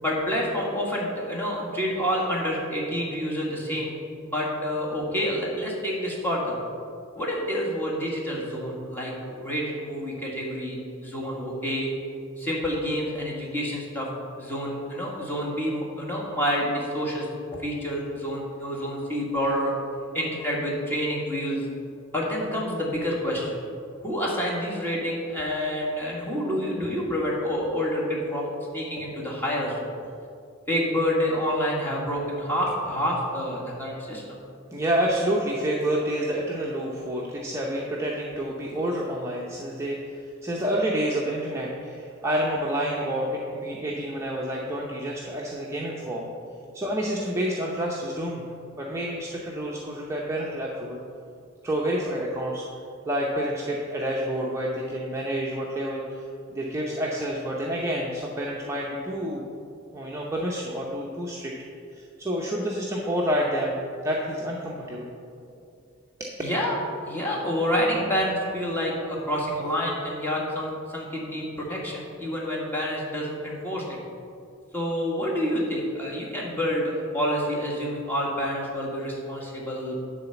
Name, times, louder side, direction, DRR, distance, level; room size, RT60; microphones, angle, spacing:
voice 1, 0.0-3.9 4.2-6.5 7.2-10.8 11.0-11.9 12.4-14.1 14.4-17.3 17.6-19.7 20.1-21.6 22.1-23.6 24.0-29.9 30.7-34.2 66.4-66.8 67.0-74.0 74.7-80.0, equal, 10° left, -4 dB, 1.8 m, -28 dB
voice 2, 34.7-46.3 46.7-48.4 48.8-51.0 51.6-52.6 53.1-59.5 59.9-61.5 61.9-63.8 64.0-65.1 66.2-66.3, equal, 15° right, -4 dB, 0.7 m, -28 dB
10.0 x 4.1 x 7.0 m, 2.4 s
head